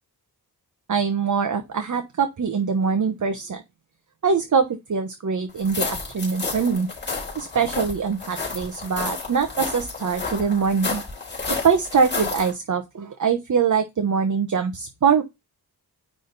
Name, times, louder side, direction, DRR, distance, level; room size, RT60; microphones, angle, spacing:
voice 1, 0.9-3.6 4.2-6.9 7.3-11.0 11.6-15.2, right 6 dB, 50° right, 1.1 m, -23 dB
sound 1, 5.6-12.5, left 4 dB, 25° left, 3.8 m, -31 dB
9.7 x 3.6 x 4.0 m
wide cardioid pair, 175°, 39 cm